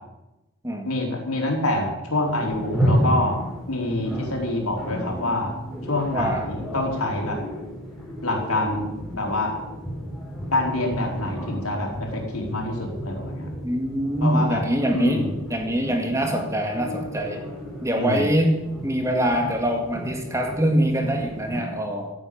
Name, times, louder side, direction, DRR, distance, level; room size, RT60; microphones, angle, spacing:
voice 1, 0.8-3.4 3.7-5.5 5.9-7.4 8.2-9.5 10.5-13.5 14.2-14.6 14.9-15.3 17.9-18.3, left 2 dB, 85° left, 0 dB, 4.6 m, -26 dB
sound 1, 2.2-21.6, equal, ahead, 4.9 m, -32 dB
voice 2, 6.1-6.5 13.6-17.4 17.8-22.1, right 1 dB, 15° right, 3 dB, 2.1 m, -24 dB
16.0 x 9.0 x 8.8 m, 0.95 s
head